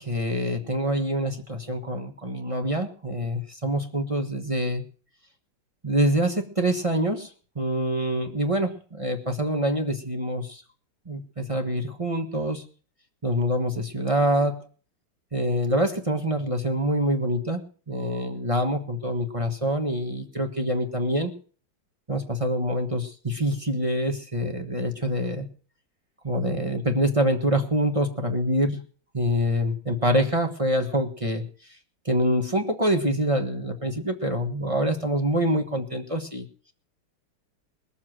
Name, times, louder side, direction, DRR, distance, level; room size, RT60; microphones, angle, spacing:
voice 1, 0.0-4.8 5.8-7.3 7.5-10.6 11.1-12.6 13.2-14.7 15.3-17.6 17.9-21.3 22.1-25.5 26.2-28.8 29.1-31.4 32.0-36.5, equal, 20° right, 4 dB, 1.1 m, -25 dB
20.5 x 7.3 x 6.2 m, 0.41 s
omnidirectional pair, 2.4 m